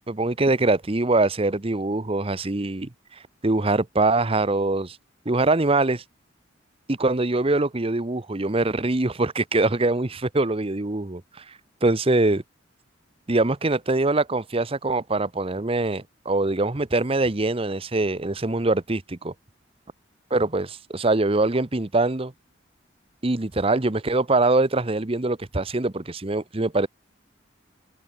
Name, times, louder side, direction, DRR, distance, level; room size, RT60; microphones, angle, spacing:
voice 1, 0.1-2.9 3.4-5.0 5.3-6.0 6.9-11.2 11.8-12.4 13.3-19.3 20.3-22.3 23.2-26.9, right 2 dB, 30° right, 0.9 m, -23 dB
head